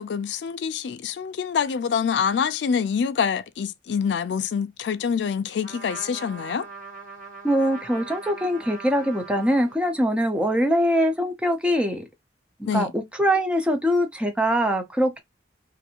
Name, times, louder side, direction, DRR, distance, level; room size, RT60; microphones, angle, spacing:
voice 1, 0.0-6.7 12.7-12.9, left 6 dB, 90° left, 0.4 m, -26 dB
Trumpet, 5.6-10.2, right 4 dB, 50° right, 1.4 m, -41 dB
voice 2, 7.4-12.0 12.7-15.2, equal, 5° right, 0.5 m, -23 dB
2.6 x 2.5 x 2.8 m
head